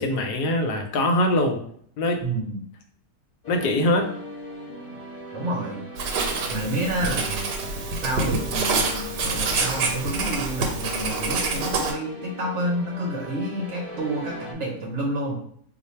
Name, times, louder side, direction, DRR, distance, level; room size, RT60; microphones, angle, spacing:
voice 1, 0.0-1.6 2.0-2.2 3.5-4.1, left 1 dB, 80° left, 4 dB, 1.2 m, -22 dB
voice 2, 2.2-2.6 5.3-5.8 6.5-7.4 8.0-15.4, right 1 dB, 60° right, -2 dB, 0.8 m, -29 dB
sound 1, 3.4-14.5, left 1 dB, 40° left, 1.0 m, -39 dB
Writing, 6.0-11.9, right 3 dB, 85° right, 1.2 m, -27 dB
2.5 x 2.5 x 4.1 m, 0.62 s
omnidirectional pair, 1.7 m